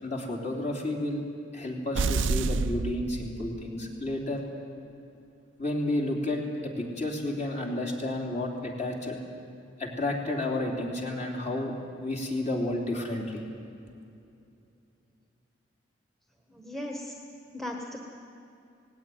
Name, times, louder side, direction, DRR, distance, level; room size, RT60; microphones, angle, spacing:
voice 1, 0.0-1.2 1.5-4.4 5.6-9.2 9.8-11.7 12.0-13.4, left 1 dB, 35° left, -1 dB, 3.3 m, -31 dB
sound 1, 1.9-3.8, right 4 dB, 70° right, 0.5 m, -29 dB
voice 2, 16.5-17.2 17.5-18.0, left 1 dB, ahead, 1 dB, 1.5 m, -37 dB
18.5 x 17.0 x 9.4 m, 2.6 s
head